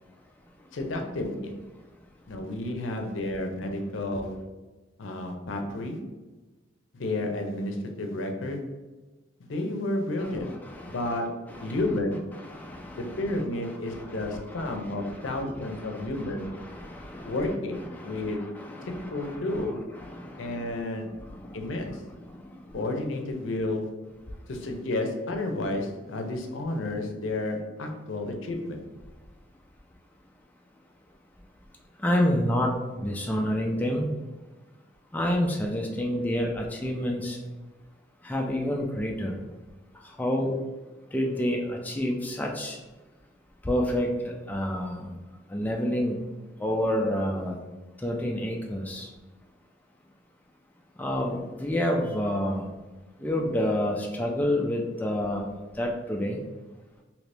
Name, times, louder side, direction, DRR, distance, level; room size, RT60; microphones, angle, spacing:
voice 1, 0.7-1.6 2.3-4.5 5.0-6.0 6.9-8.7 9.4-10.5 10.9-12.4 13.0-16.6 17.2-18.5 18.8-19.8 20.4-21.1 21.5-22.0 22.7-23.9 24.5-28.8, left 2 dB, 85° left, 3 dB, 0.5 m, -31 dB
voice 2, 10.2-11.1 11.5-11.8 12.3-13.2 13.9-17.4 17.9-19.6 20.0-20.7 21.3-21.6 32.0-32.7 33.0-34.1 35.1-37.4 38.2-39.4 40.2-40.5 41.1-42.8 43.6-45.1 45.5-46.2 46.6-47.6 48.0-49.1 51.0-52.6 53.2-55.5 55.8-56.4, left 1 dB, 10° left, 0 dB, 0.3 m, -29 dB
2.9 x 2.6 x 3.3 m, 1.2 s
head